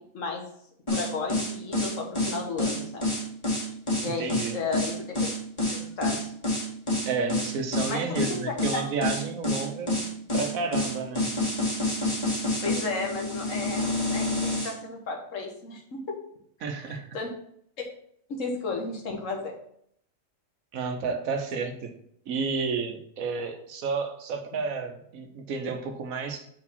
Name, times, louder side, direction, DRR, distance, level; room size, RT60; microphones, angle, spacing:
voice 1, 0.9-3.1 4.0-5.1 5.7-6.3 7.9-8.4 8.7-8.8 12.6-16.0 16.6-17.3 18.4-19.5, left 4 dB, 70° left, 1 dB, 1.6 m, -33 dB
sound 1, 0.9-14.7, left 1 dB, 20° left, 2.1 m, -28 dB
voice 2, 4.0-4.5 7.1-10.0 10.3-11.3 16.6-17.1 20.7-21.9 22.3-26.5, right 4 dB, 80° right, 5 dB, 1.4 m, -31 dB
5.2 x 4.9 x 5.5 m, 0.69 s
omnidirectional pair, 1.4 m